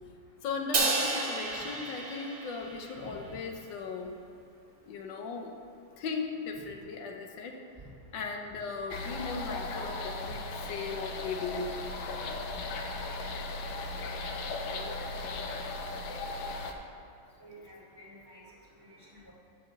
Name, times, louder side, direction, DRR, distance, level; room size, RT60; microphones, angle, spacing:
voice 1, 0.4-4.1 4.9-5.5 6.0-7.6 8.1-11.7 12.2-12.4, left 4 dB, 85° left, 3 dB, 1.5 m, -37 dB
Crash cymbal, 0.7-3.1, right 3 dB, 50° right, 1.5 m, -31 dB
sound 1, 8.9-16.7, left 3 dB, 70° left, 1.3 m, -37 dB
voice 2, 17.4-18.4 18.8-19.3, equal, 15° right, -7 dB, 1.9 m, -51 dB
7.4 x 6.0 x 6.4 m, 2.5 s
omnidirectional pair, 2.0 m